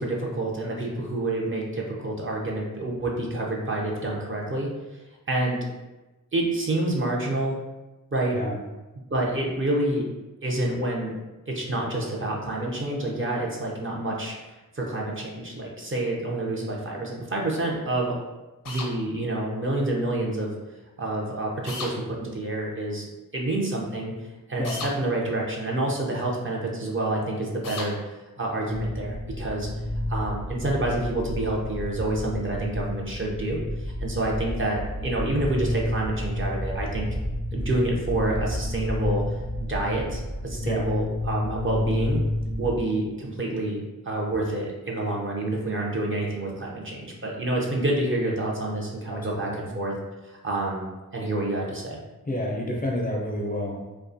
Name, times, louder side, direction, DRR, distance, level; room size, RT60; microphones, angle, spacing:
voice 1, 0.0-5.0 5.3-5.6 6.3-7.6 8.1-8.4 9.1-10.1 10.4-11.1 11.5-14.3 14.7-18.2 18.7-20.5 21.0-23.1 23.3-24.1 24.5-28.0 28.4-29.7 30.1-37.1 37.5-39.2 39.7-42.2 42.6-49.9 50.2-50.9 51.1-52.0, right 2 dB, 40° right, -2 dB, 0.5 m, -28 dB
sound 1, 18.6-18.9 21.7-21.9 24.6-24.9 27.6-27.9, left 3 dB, 70° left, 0.6 m, -34 dB
sound 2, 28.7-42.8, left 1 dB, 70° right, 0.8 m, -30 dB
voice 2, 49.1-49.7 52.3-53.9, left 1 dB, 25° left, -2 dB, 0.4 m, -29 dB
2.3 x 2.2 x 2.6 m, 1.1 s
wide cardioid pair, 55°, 34 cm